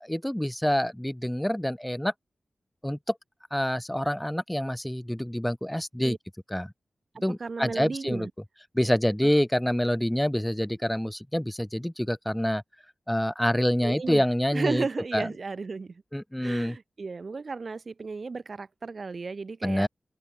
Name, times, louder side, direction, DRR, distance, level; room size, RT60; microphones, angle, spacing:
voice 1, 0.0-2.1 2.8-3.1 3.5-6.2 6.5-6.7 7.2-8.3 8.7-12.6 13.1-14.8 15.1-15.3 16.1-16.8 19.6-19.9, equal, 5° left, 4.2 m, -27 dB
voice 2, 7.4-8.3 9.2-9.3 13.8-14.2 14.5-16.0 16.4-19.9, right 4 dB, 55° right, 3.6 m, -34 dB
open air
wide cardioid pair, 80°, 0 cm